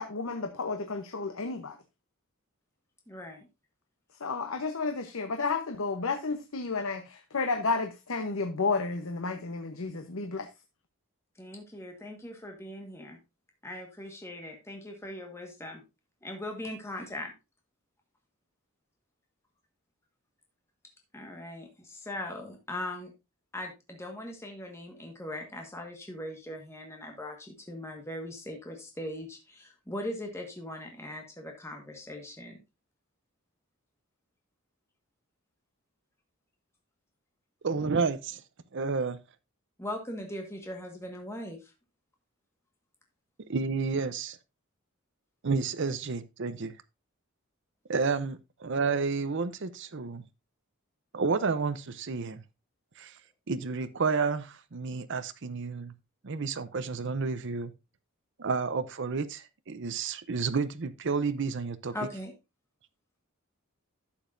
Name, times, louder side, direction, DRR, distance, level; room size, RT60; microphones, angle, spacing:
voice 1, 0.0-1.7 4.2-10.5, left 4 dB, 70° left, 0.9 m, -32 dB
voice 2, 3.1-3.5 11.4-13.2 13.6-15.8 16.2-17.3 21.1-23.1 23.5-32.6 39.8-41.7 61.9-62.3, left 1 dB, 15° left, 1.5 m, -40 dB
voice 3, 37.6-38.4 38.7-39.2 43.5-44.4 45.4-46.7 47.9-50.2 51.1-52.4 53.0-53.1 53.5-55.9 56.2-57.7 58.4-61.9, right 4 dB, 55° right, 0.6 m, -30 dB
11.5 x 7.0 x 2.6 m
head